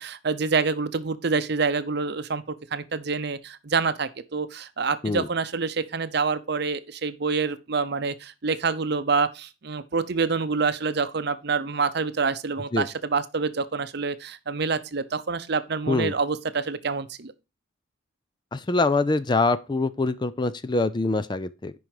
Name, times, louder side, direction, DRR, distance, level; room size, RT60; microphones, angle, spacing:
voice 1, 0.0-17.3, right 4 dB, 55° right, 0.7 m, -27 dB
voice 2, 18.5-21.7, left 3 dB, 20° left, 0.4 m, -24 dB
9.4 x 5.4 x 4.8 m
head